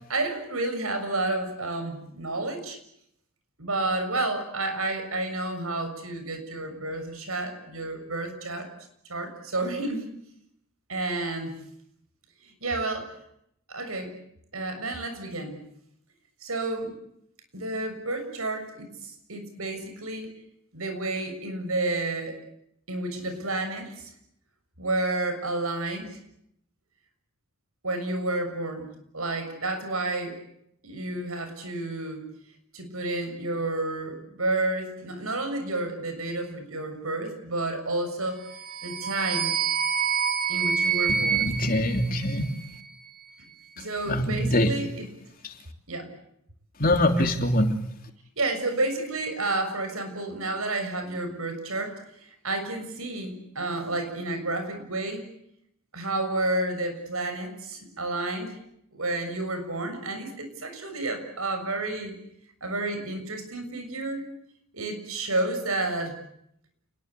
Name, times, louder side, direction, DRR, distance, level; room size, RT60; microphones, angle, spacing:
voice 1, 0.0-2.8 3.6-8.7 9.1-10.0 10.9-11.6 12.4-13.1 13.7-14.1 14.5-15.6 16.4-16.9 17.5-20.3 20.7-22.4 22.9-24.1 24.8-26.2 27.8-30.4 30.8-32.3 32.7-38.4 38.8-39.6 40.5-41.5 43.8-45.1 45.9-46.1 48.4-55.3 55.9-58.5 58.9-62.1 62.6-64.2 64.7-66.2, right 2 dB, 80° right, 7 dB, 6.8 m, -30 dB
sound 1, 38.5-42.8, right 7 dB, 45° right, 4.0 m, -27 dB
voice 2, 41.1-42.5 43.8-44.7 45.4-45.5 46.8-47.7, left 1 dB, 40° left, 5 dB, 3.2 m, -24 dB
29.0 x 21.5 x 8.3 m, 0.74 s
head